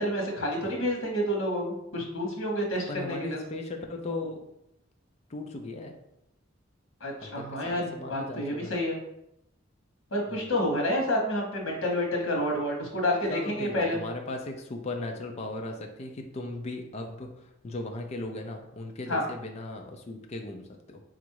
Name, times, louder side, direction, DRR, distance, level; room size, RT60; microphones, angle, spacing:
voice 1, 0.0-3.4 7.0-9.0 10.1-14.0 19.1-19.2, left 1 dB, 85° left, 0 dB, 1.1 m, -29 dB
voice 2, 2.9-4.5 5.3-6.0 7.2-8.7 10.3-10.7 13.3-21.0, left 2 dB, 35° left, 3 dB, 0.5 m, -37 dB
4.0 x 2.5 x 4.5 m, 0.82 s
head